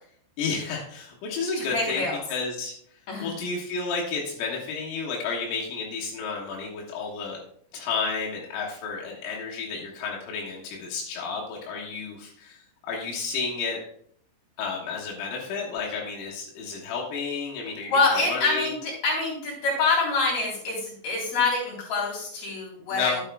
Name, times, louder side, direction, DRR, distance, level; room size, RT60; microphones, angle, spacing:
voice 1, 0.4-2.7 3.2-7.4 7.7-12.6 12.8-13.8 14.6-18.0 18.3-18.7 22.9-23.2, left 5 dB, 80° left, -3 dB, 4.0 m, -31 dB
voice 2, 1.7-2.1 3.1-3.3 17.9-23.1, left 3 dB, 40° left, -4 dB, 4.0 m, -25 dB
12.0 x 8.9 x 2.3 m, 0.64 s
omnidirectional pair, 5.8 m